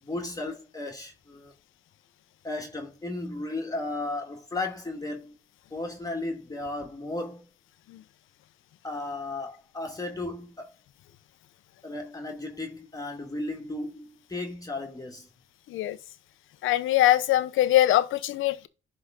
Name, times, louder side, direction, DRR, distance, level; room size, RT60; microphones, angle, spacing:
voice 1, 0.0-1.5 2.4-5.4 5.7-7.5 8.8-10.7 11.8-15.3, left 2 dB, 20° left, 2.0 m, -35 dB
voice 2, 16.6-18.7, left 14 dB, 85° left, 0.9 m, -22 dB
11.0 x 3.9 x 3.7 m
cardioid pair, 90°, 20 cm